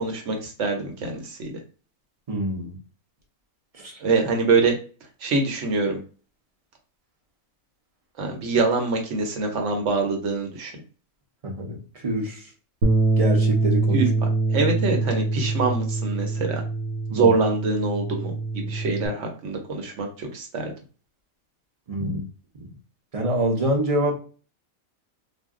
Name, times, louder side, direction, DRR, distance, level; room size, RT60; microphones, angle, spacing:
voice 1, 0.0-1.5 4.0-4.8 5.2-6.0 8.2-10.7 13.9-14.1 14.5-16.6 17.1-20.7 22.0-22.1, right 3 dB, 60° right, 3 dB, 1.0 m, -24 dB
voice 2, 2.3-2.8 3.8-3.9 11.4-11.8 12.0-12.4 13.2-14.0 17.1-17.4 21.9-22.2 22.6-22.7 23.1-24.1, right 1 dB, 35° right, 0 dB, 0.6 m, -26 dB
Bass guitar, 12.8-19.1, right 3 dB, 90° right, 1.2 m, -24 dB
2.5 x 2.2 x 3.6 m, 0.37 s
omnidirectional pair, 1.5 m